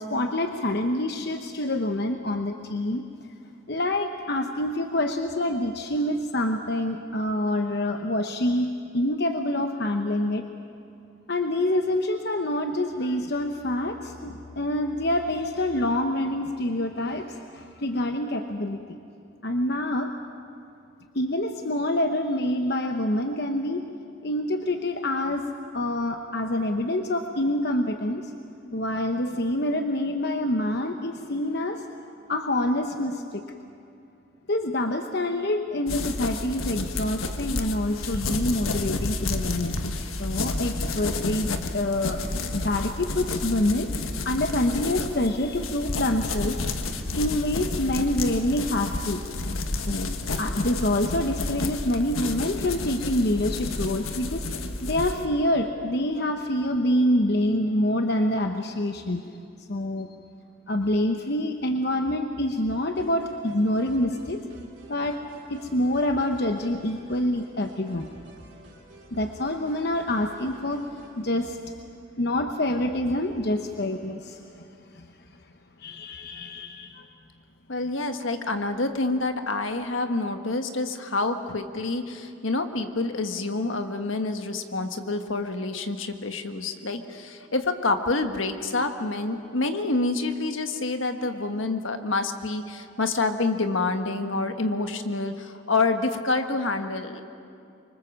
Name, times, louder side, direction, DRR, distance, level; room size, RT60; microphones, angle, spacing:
voice 1, 0.0-3.0 3.7-10.4 11.3-19.0 19.4-20.1 21.1-23.9 24.2-25.5 25.7-28.3 28.7-31.8 32.3-33.4 34.5-39.8 40.2-42.2 42.5-43.9 44.2-46.6 47.2-49.3 49.9-54.4 54.8-59.2 59.6-60.1 60.7-64.4 64.9-65.2 65.5-68.1 69.1-70.8 71.2-71.6 72.2-74.7 74.9-75.1 75.8-77.1, left 1 dB, 50° left, 5 dB, 1.0 m, -26 dB
sound 1, 35.9-55.3, left 2 dB, 90° left, 1.5 m, -30 dB
sound 2, 62.9-71.2, right 1 dB, 60° right, 4.5 m, -51 dB
voice 2, 77.7-97.2, left 3 dB, 75° left, 7 dB, 1.6 m, -27 dB
25.5 x 24.5 x 7.4 m, 2.6 s
head